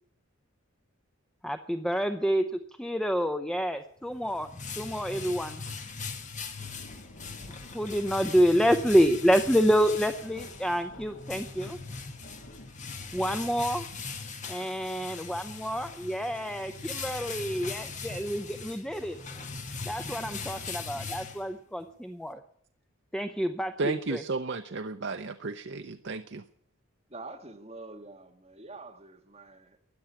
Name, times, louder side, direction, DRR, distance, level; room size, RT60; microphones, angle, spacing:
voice 1, 1.4-2.4 2.8-5.6 7.7-11.8 13.1-13.9 14.5-19.2 19.8-22.4 23.1-24.2, equal, 5° left, 0.5 m, -28 dB
sound 1, 4.0-21.8, left 4 dB, 35° left, 1.6 m, -40 dB
sound 2, 6.6-13.2, left 1 dB, 65° left, 2.4 m, -52 dB
voice 2, 23.8-26.4, right 3 dB, 55° right, 0.6 m, -33 dB
voice 3, 27.1-29.8, right 3 dB, 30° right, 1.6 m, -46 dB
13.5 x 10.0 x 9.8 m
head